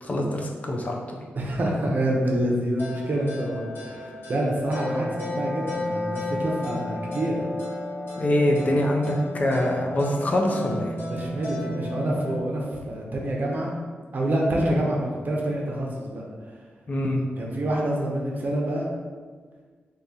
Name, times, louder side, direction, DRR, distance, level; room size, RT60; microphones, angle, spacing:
voice 1, 0.0-1.2 8.2-10.9 16.9-17.2, left 1 dB, 40° left, 0 dB, 0.4 m, -24 dB
voice 2, 1.4-7.4 11.0-13.8 14.1-16.2 17.4-18.9, right 1 dB, 50° right, -2 dB, 0.6 m, -27 dB
sound 1, 2.8-12.4, left 1 dB, 60° left, 1.1 m, -33 dB
2.8 x 2.7 x 3.7 m, 1.5 s
wide cardioid pair, 120°, 4 cm